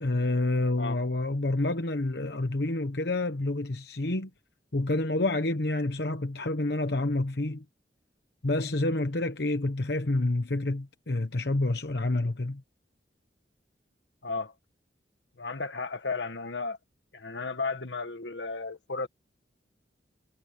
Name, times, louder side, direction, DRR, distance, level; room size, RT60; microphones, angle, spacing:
voice 1, 0.0-4.3 4.7-7.6 8.4-12.6, left 2 dB, 70° left, 1.1 m, -28 dB
voice 2, 14.2-14.5 15.4-16.8 17.1-19.1, left 4 dB, 90° left, 1.8 m, -34 dB
head